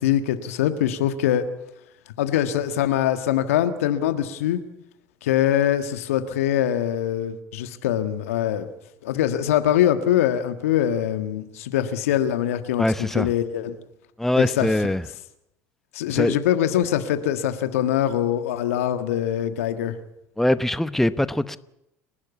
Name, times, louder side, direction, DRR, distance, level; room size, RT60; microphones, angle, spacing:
voice 1, 0.0-1.4 2.2-4.6 5.2-8.7 9.0-12.8 13.1-13.7 14.4-14.7 15.9-19.9, left 11 dB, 75° left, 1.6 m, -23 dB
voice 2, 12.8-13.3 14.2-15.0 16.1-16.4 20.4-21.6, left 1 dB, 5° left, 0.9 m, -22 dB
29.5 x 12.0 x 8.4 m
hypercardioid pair, 70°, 8 cm